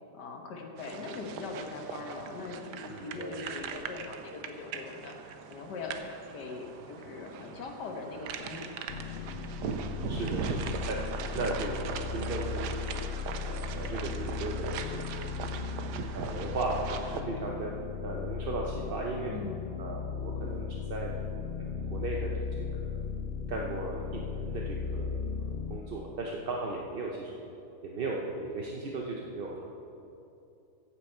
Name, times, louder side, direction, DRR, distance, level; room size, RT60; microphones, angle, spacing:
voice 1, 0.1-8.7 9.1-9.3 19.3-19.7, left 3 dB, 90° left, 2 dB, 1.8 m, -41 dB
sound 1, 0.8-17.2, right 7 dB, 85° right, 1.3 m, -40 dB
voice 2, 2.9-3.3 9.6-11.0 11.3-12.8 13.4-14.8 15.1-15.4 16.1-17.7 18.0-19.3 19.8-21.1 21.6-22.3 22.8-23.1 23.5-25.2 25.7-27.4 27.8-29.6, right 3 dB, 45° right, -1 dB, 0.9 m, -36 dB
sound 2, 8.9-25.8, left 6 dB, 65° left, 0.6 m, -36 dB
14.5 x 8.7 x 4.5 m, 2.8 s
omnidirectional pair, 1.8 m